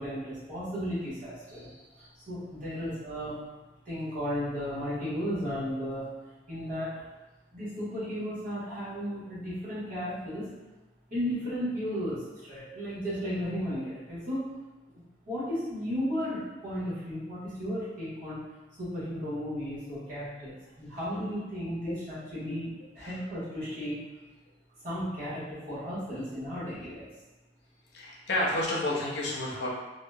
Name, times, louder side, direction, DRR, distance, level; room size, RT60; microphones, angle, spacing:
voice 1, 0.0-3.4 3.8-6.1 6.5-7.0 7.5-10.5 11.1-14.5 15.3-18.4 18.8-24.0 24.8-27.1, equal, 50° right, -11 dB, 1.2 m, -34 dB
voice 2, 27.9-29.7, left 1 dB, 75° left, -4 dB, 0.6 m, -30 dB
2.7 x 2.2 x 2.3 m, 1.1 s
head